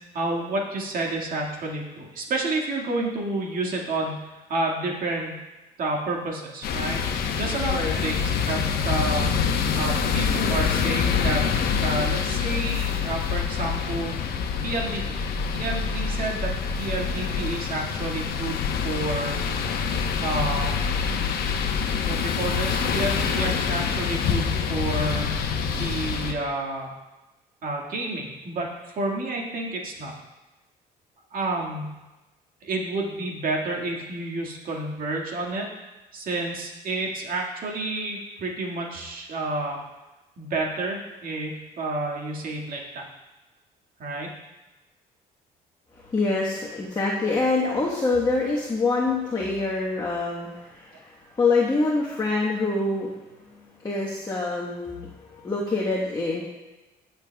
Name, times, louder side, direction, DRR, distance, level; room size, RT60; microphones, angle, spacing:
voice 1, 0.1-5.3 5.8-9.3 9.8-11.5 11.8-14.1 14.6-15.2 15.5-19.4 20.2-20.8 22.0-25.4 25.7-26.9 27.6-30.1 31.3-31.9 32.6-35.7 36.1-39.8 40.4-43.0 44.0-44.3, right 2 dB, 55° right, -1 dB, 2.0 m, -30 dB
sound 1, 6.6-26.3, left 6 dB, 65° left, 1.0 m, -26 dB
voice 2, 45.9-53.2 53.8-56.4, left 3 dB, 25° left, -5 dB, 1.3 m, -25 dB
17.0 x 6.9 x 2.3 m, 1.1 s
cardioid pair, 110°, 17 cm